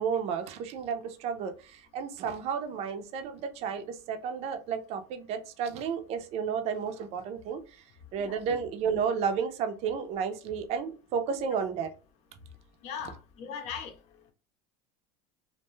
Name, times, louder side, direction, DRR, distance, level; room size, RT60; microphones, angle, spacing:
voice 1, 0.0-7.8 8.1-11.9, right 6 dB, 45° right, 0.5 m, -32 dB
voice 2, 12.8-13.9, left 7 dB, 50° left, 0.7 m, -39 dB
2.5 x 2.2 x 3.0 m
supercardioid pair, 125°, 14 cm